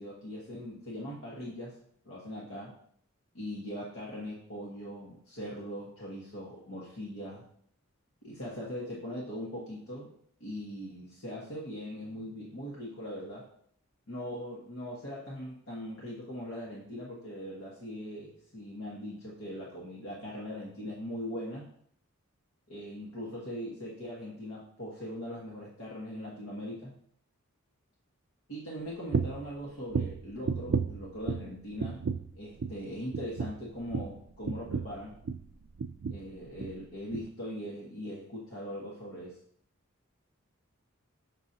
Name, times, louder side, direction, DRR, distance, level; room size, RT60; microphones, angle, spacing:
voice 1, 0.0-1.8 2.0-2.7 3.3-7.4 8.2-10.1 10.4-13.5 14.1-21.7 22.7-26.9 28.5-32.0 32.3-35.2 36.1-39.4, equal, 70° left, -6 dB, 1.4 m, -40 dB
sound 1, 29.1-29.5 29.9-31.5 31.8-32.3 32.6-32.8 33.1-35.5 35.8-36.3 36.6-36.8 37.1-37.3, right 5 dB, 50° right, 0.3 m, -33 dB
6.3 x 6.0 x 2.8 m, 0.64 s
head